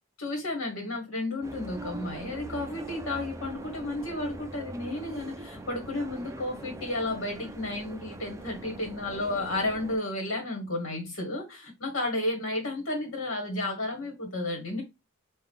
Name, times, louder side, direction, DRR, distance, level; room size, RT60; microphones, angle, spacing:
voice 1, 0.2-14.8, left 2 dB, 70° left, 2 dB, 1.5 m, -32 dB
sound 1, 1.4-10.0, right 2 dB, 15° right, 0.4 m, -42 dB
5.7 x 2.4 x 3.5 m, 0.22 s
head